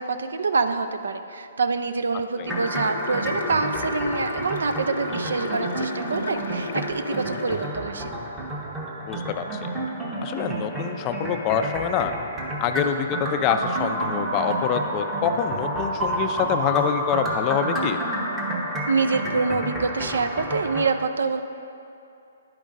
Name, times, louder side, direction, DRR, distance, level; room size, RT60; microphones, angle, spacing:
voice 1, 0.0-8.1 18.9-21.4, right 4 dB, 80° right, 9 dB, 0.4 m, -26 dB
sound 1, 2.5-7.7, left 3 dB, 65° left, 0.6 m, -34 dB
sound 2, 2.5-20.9, right 1 dB, 10° right, 0.8 m, -30 dB
voice 2, 9.1-9.5 10.2-12.1 12.6-18.0, left 8 dB, 30° left, 8 dB, 0.3 m, -25 dB
10.5 x 5.2 x 2.5 m, 2.7 s
hypercardioid pair, 145°, 0 cm